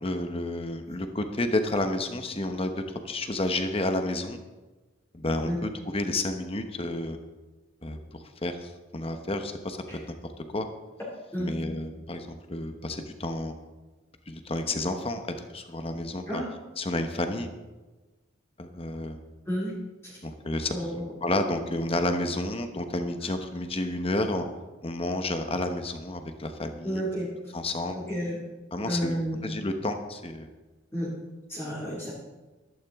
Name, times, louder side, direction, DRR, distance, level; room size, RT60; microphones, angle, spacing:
voice 1, 0.0-2.7 3.0-4.4 5.1-7.2 7.8-8.0 8.4-10.7 11.4-13.5 14.3-15.2 15.5-16.4 16.8-17.5 18.6-19.2 20.2-24.4 24.8-27.0 27.5-28.0 28.7-30.5, left 2 dB, 30° left, 7 dB, 1.0 m, -30 dB
voice 2, 20.7-21.0 26.8-27.3 27.9-28.4 28.9-29.4 30.9-31.1 31.5-32.1, equal, 15° left, -6 dB, 2.4 m, -31 dB
14.0 x 12.0 x 3.6 m, 1.2 s
head